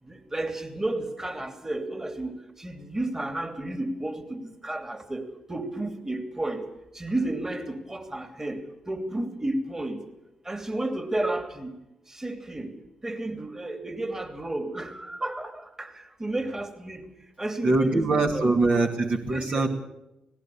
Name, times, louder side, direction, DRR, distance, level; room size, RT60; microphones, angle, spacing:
voice 1, 0.1-6.7 6.9-10.0 10.4-11.8 12.1-12.7 13.0-17.1 17.4-18.5 19.3-19.7, right 2 dB, 20° right, 7 dB, 2.9 m, -32 dB
voice 2, 17.6-19.7, right 3 dB, 50° right, 2 dB, 2.3 m, -23 dB
18.0 x 17.5 x 8.6 m, 0.91 s
supercardioid pair, 50°, 3 cm